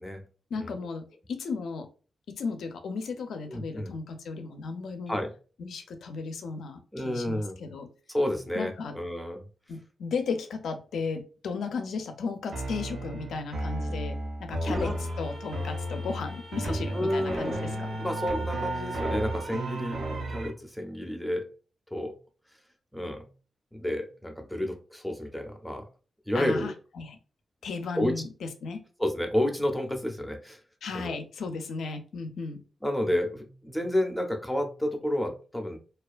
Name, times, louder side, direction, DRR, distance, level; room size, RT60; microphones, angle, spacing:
voice 1, 0.5-1.9 2.3-5.2 5.6-7.9 8.5-8.9 9.7-17.9 26.3-27.2 27.6-28.8 30.8-32.6, left 4 dB, 90° left, 7 dB, 0.4 m, -35 dB
voice 2, 3.5-4.0 5.1-5.3 6.9-7.7 8.1-9.4 14.6-14.9 16.9-21.5 21.9-22.1 22.9-23.3 23.7-25.8 26.3-26.7 28.0-28.2 29.0-30.6 30.9-31.2 32.8-35.8, left 1 dB, 5° left, 4 dB, 0.4 m, -30 dB
sound 1, 12.5-20.5, equal, 65° right, 0.5 m, -35 dB
sound 2, 14.7-20.5, right 2 dB, 80° right, 1.0 m, -35 dB
2.3 x 2.2 x 2.4 m, 0.37 s
wide cardioid pair, 125°, 0 cm